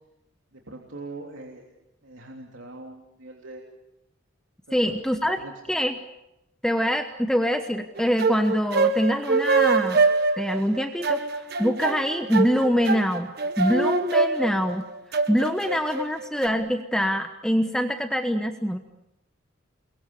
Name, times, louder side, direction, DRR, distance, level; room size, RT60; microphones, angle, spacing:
voice 1, 0.5-1.7 2.0-3.6 4.7-5.0 5.4-5.5 15.7-15.8, right 2 dB, 70° right, 0 dB, 3.2 m, -42 dB
voice 2, 4.7-6.0 6.6-10.0 10.4-11.2 11.6-14.9 15.3-18.8, equal, 5° left, 6 dB, 1.1 m, -24 dB
sound 1, 8.0-16.5, right 3 dB, 50° right, 1.6 m, -24 dB
30.0 x 22.5 x 6.9 m, 0.88 s
head